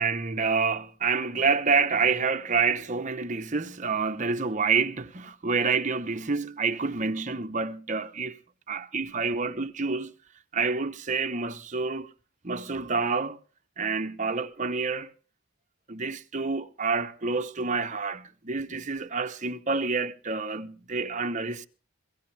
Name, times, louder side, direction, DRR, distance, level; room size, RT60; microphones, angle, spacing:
voice 1, 0.0-8.4 8.7-10.1 10.5-12.1 12.4-13.4 13.8-15.1 15.9-21.7, right 4 dB, 35° right, 0.9 m, -28 dB
21.5 x 16.5 x 3.4 m
head